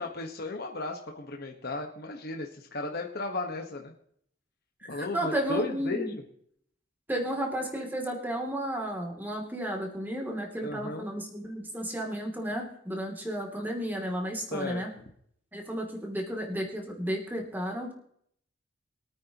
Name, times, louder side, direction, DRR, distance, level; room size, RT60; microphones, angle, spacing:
voice 1, 0.0-3.9 4.9-6.2 10.6-11.1 14.5-14.8, left 2 dB, 55° left, 2 dB, 1.4 m, -35 dB
voice 2, 4.9-6.1 7.1-14.9 15.5-17.9, right 1 dB, 10° right, 0 dB, 2.7 m, -33 dB
23.5 x 9.3 x 3.0 m, 0.66 s
head